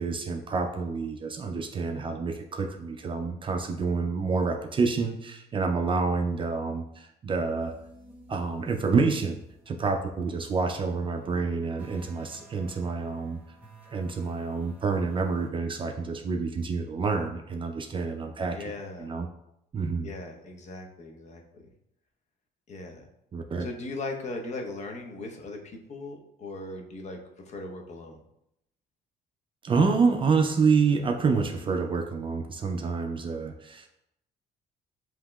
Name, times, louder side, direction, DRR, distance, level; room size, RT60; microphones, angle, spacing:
voice 1, 0.0-7.7 8.3-13.4 13.9-19.3 19.7-20.1 23.3-23.7 29.6-33.9, right 4 dB, 30° right, 4 dB, 0.4 m, -28 dB
sound 1, 7.6-15.5, right 2 dB, 10° right, 1.0 m, -55 dB
voice 2, 18.5-19.1 20.0-21.6 22.7-23.0 23.6-27.2 27.5-28.2, left 2 dB, 45° left, 2 dB, 0.8 m, -38 dB
7.4 x 2.8 x 2.2 m, 0.81 s
cardioid pair, 110°, 17 cm